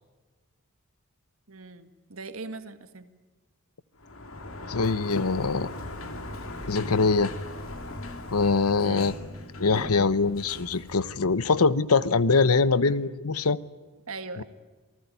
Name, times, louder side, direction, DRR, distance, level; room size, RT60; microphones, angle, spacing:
voice 1, 1.5-3.1 8.8-9.1 14.1-14.4, right 3 dB, 70° right, 1.9 m, -40 dB
Sliding door, 4.0-11.8, left 1 dB, 65° left, 2.8 m, -39 dB
voice 2, 4.7-5.7 6.7-7.3 8.3-9.1 9.6-13.6 14.4-14.5, left 4 dB, 90° left, 0.9 m, -23 dB
28.0 x 19.5 x 9.7 m
head